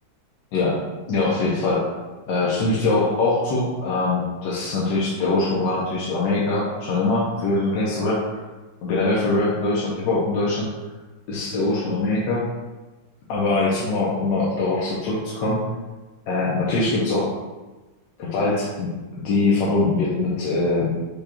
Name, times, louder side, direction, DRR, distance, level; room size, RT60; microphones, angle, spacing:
voice 1, 0.5-1.9 2.3-8.4 8.8-10.7 11.3-12.5 13.3-15.6 16.3-17.3 18.2-18.9 19.2-20.9, left 2 dB, 70° left, -6 dB, 1.3 m, -22 dB
5.0 x 2.3 x 4.2 m, 1.2 s
omnidirectional pair, 2.2 m